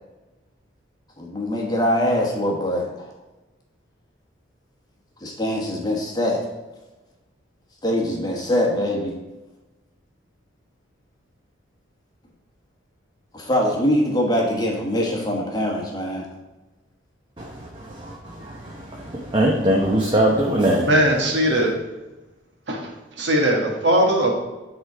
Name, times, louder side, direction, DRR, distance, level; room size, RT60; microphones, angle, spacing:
voice 1, 1.2-3.1 5.2-6.4 7.8-9.1 13.3-16.3, left 1 dB, 20° left, -1 dB, 1.3 m, -23 dB
voice 2, 17.4-20.9, right 1 dB, 25° right, -3 dB, 0.9 m, -22 dB
voice 3, 20.9-21.7 22.7-22.9 23.2-24.3, right 1 dB, 60° right, 0 dB, 1.5 m, -19 dB
9.3 x 3.8 x 4.8 m, 1.1 s
head